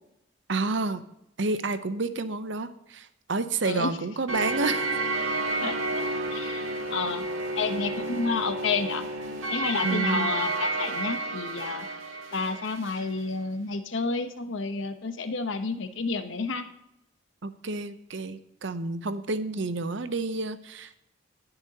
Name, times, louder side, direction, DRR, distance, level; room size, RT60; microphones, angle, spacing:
voice 1, 0.5-1.0 1.4-5.0 9.8-10.3 17.4-21.0, right 3 dB, 65° right, 12 dB, 0.7 m, -30 dB
voice 2, 3.6-4.0 5.6-7.2 7.6-9.1 9.5-11.9 12.3-16.7, left 4 dB, 75° left, 8 dB, 1.0 m, -30 dB
sound 1, 4.3-13.1, right 2 dB, 90° right, 2.1 m, -31 dB
19.0 x 6.8 x 2.8 m, 0.79 s
head